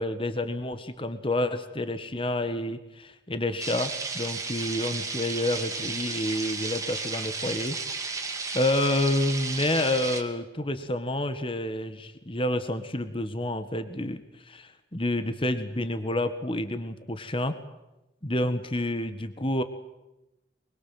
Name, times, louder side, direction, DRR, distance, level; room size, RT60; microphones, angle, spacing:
voice 1, 0.0-7.8 8.1-17.6 18.2-19.6, left 1 dB, 30° left, 10 dB, 1.7 m, -29 dB
sound 1, 3.6-10.2, right 4 dB, 20° right, 2.8 m, -33 dB
25.0 x 22.5 x 7.7 m, 0.96 s
head